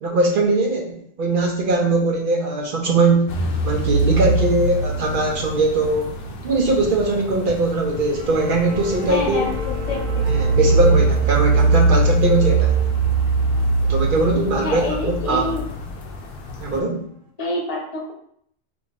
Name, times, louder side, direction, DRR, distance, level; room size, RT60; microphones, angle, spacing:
voice 1, 0.0-3.3 3.6-6.2 6.4-9.5 10.2-12.8 13.8-15.5 16.6-17.0, right 2 dB, 60° right, 1 dB, 0.6 m, -20 dB
sound 1, 3.3-16.8, right 3 dB, 60° left, 0.7 m, -22 dB
sound 2, 7.9-12.9, left 6 dB, 10° left, 1.1 m, -35 dB
sound 3, 7.9-17.2, right 3 dB, 80° right, 1.0 m, -40 dB
voice 2, 9.1-10.2 14.6-15.6 17.4-18.1, left 2 dB, 30° left, -2 dB, 0.9 m, -27 dB
3.0 x 2.6 x 3.8 m, 0.65 s
omnidirectional pair, 1.3 m